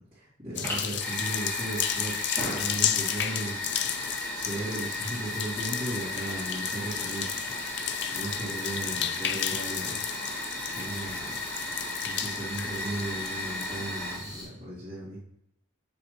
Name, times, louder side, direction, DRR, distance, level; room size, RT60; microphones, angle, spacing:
voice 1, 0.1-3.6 4.0-7.5 8.1-10.1 10.7-11.4 12.0-15.2, right 1 dB, 25° right, -15 dB, 3.0 m, -36 dB
sound 1, 0.5-13.8, left 10 dB, 55° left, 0.4 m, -33 dB
Fire, 0.5-14.4, left 1 dB, 15° left, 3.1 m, -35 dB
7.4 x 6.8 x 3.4 m, 0.78 s
head